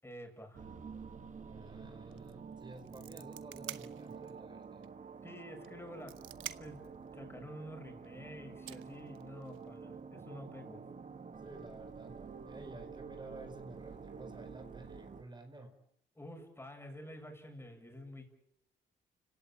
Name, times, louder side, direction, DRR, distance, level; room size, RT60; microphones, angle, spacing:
voice 1, 0.0-0.6 5.2-6.1 6.6-6.8 7.1-10.8 16.2-18.3, equal, 10° left, 4 dB, 7.4 m, -49 dB
sound 1, 0.5-15.2, right 5 dB, 40° right, 1.9 m, -49 dB
voice 2, 1.5-4.8 11.4-15.7, right 2 dB, 20° right, 7 dB, 4.7 m, -52 dB
sound 2, 2.1-2.3 2.6-4.4 4.8-4.9 5.6-6.9 8.0-8.1 8.7-9.7, right 14 dB, 90° right, 1.1 m, -47 dB
29.5 x 17.0 x 8.9 m, 0.75 s
cardioid pair, 90°, 20 cm